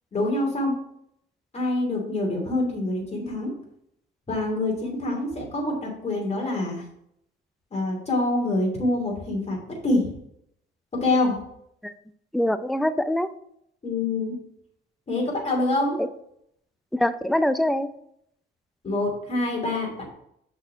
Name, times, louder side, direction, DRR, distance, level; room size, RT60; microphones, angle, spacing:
voice 1, 0.1-0.7 1.5-3.5 4.3-6.8 7.7-9.6 9.8-10.1 11.0-11.3 13.8-14.3 15.1-16.0 18.8-20.1, left 2 dB, 35° left, -1 dB, 2.9 m, -25 dB
voice 2, 12.3-13.3 16.0-16.1 16.9-17.9, left 1 dB, ahead, 12 dB, 0.4 m, -23 dB
6.1 x 4.5 x 5.8 m, 0.74 s
cardioid pair, 90°, 20 cm